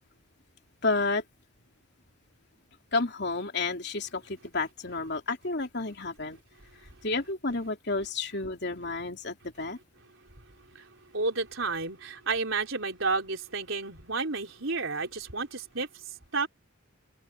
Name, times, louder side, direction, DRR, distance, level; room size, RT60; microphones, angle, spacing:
voice 1, 0.8-1.2 2.9-6.4 7.0-9.8, left 3 dB, 50° left, 3.3 m, -31 dB
voice 2, 11.1-15.9 16.3-16.5, right 3 dB, 65° right, 4.3 m, -31 dB
open air
head